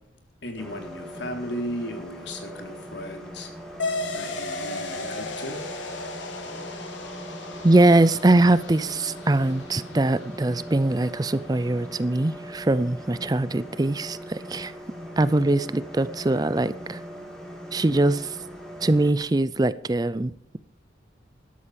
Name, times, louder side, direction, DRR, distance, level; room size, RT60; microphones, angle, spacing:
voice 1, 0.4-3.8 4.1-5.6, equal, 75° left, 3.6 m, -35 dB
sound 1, 0.6-19.1, equal, 5° left, 3.5 m, -40 dB
sound 2, 3.8-12.8, left 2 dB, 90° left, 3.3 m, -36 dB
voice 2, 7.6-14.7 15.2-17.0 17.7-18.4 18.8-20.6, right 2 dB, 20° right, 0.4 m, -22 dB
13.0 x 12.5 x 5.0 m
head